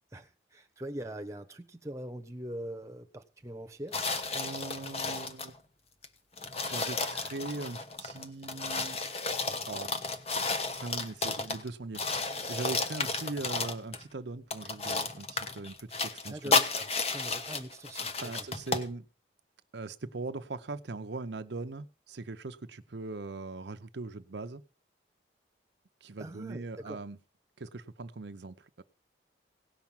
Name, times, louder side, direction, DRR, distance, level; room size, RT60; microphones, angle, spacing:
voice 1, 0.1-4.0 16.2-18.5 26.2-27.0, right 1 dB, 15° right, 1.1 m, -42 dB
sound 1, 3.9-5.6 6.0-6.1 6.4-11.7 11.9-14.0 14.5-18.9, left 4 dB, 35° left, 1.2 m, -32 dB
voice 2, 4.3-5.5 6.6-9.0 9.7-10.1 10.8-16.6 18.2-19.1 19.7-24.6 26.0-27.2 27.6-28.8, right 3 dB, 70° right, 0.7 m, -40 dB
17.5 x 6.0 x 7.2 m
head